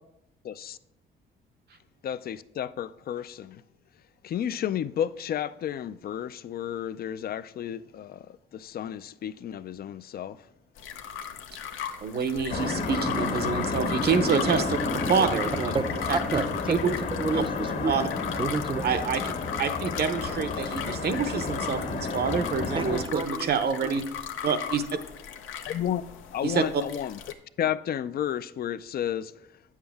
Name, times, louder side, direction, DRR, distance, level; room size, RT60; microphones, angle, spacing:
voice 1, 0.4-0.8 2.0-3.6 4.2-10.4 13.9-14.0 15.2-15.3 25.7-26.0 26.3-27.2 27.6-29.3, left 10 dB, 50° left, 0.4 m, -32 dB
sound 1, 10.8-27.3, left 8 dB, 85° left, 0.7 m, -38 dB
voice 2, 12.0-15.7 16.1-16.2 16.7-16.9 17.3-17.4 17.9-18.1 18.8-19.2 19.6-24.0 24.4-24.8 26.4-26.8, right 6 dB, 55° right, 0.8 m, -27 dB
sound 2, 12.5-23.0, left 3 dB, 65° left, 1.7 m, -31 dB
voice 3, 15.7-17.9 18.4-18.8 22.7-23.5 23.8-24.0, right 4 dB, 25° right, 0.5 m, -30 dB
8.6 x 7.3 x 3.5 m
cardioid pair, 90°, 20 cm